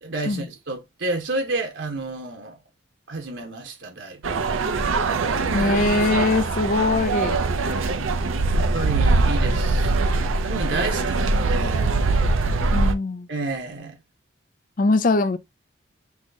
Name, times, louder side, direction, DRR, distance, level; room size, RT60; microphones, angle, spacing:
voice 1, 0.0-2.6 3.1-4.7 8.5-10.0 10.4-11.9 13.3-14.0, right 2 dB, 70° right, 1.2 m, -30 dB
sound 1, 4.2-12.9, right 3 dB, 90° right, 0.6 m, -22 dB
voice 2, 5.5-7.4 12.7-13.3 14.8-15.4, left 3 dB, 45° left, 0.4 m, -21 dB
5.9 x 2.9 x 2.8 m
head